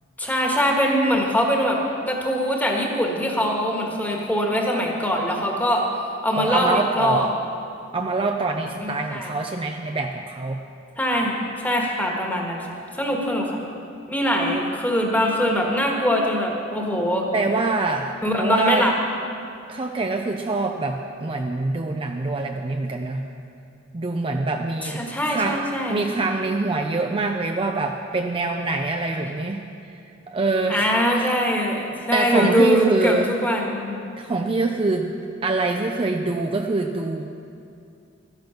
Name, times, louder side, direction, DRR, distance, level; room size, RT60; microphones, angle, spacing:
voice 1, 0.2-1.8 2.1-5.9 6.2-7.3 8.8-9.3 11.0-13.6 14.1-17.3 18.2-19.0 24.8-26.0 30.7-34.0, equal, 10° left, 0 dB, 1.6 m, -22 dB
voice 2, 6.4-7.3 7.9-10.6 17.3-18.9 19.7-23.2 23.9-25.6 25.9-29.7 30.3-30.9 32.1-33.3 34.2-37.3, right 3 dB, 25° right, 3 dB, 0.5 m, -25 dB
13.0 x 10.5 x 5.9 m, 2.5 s
head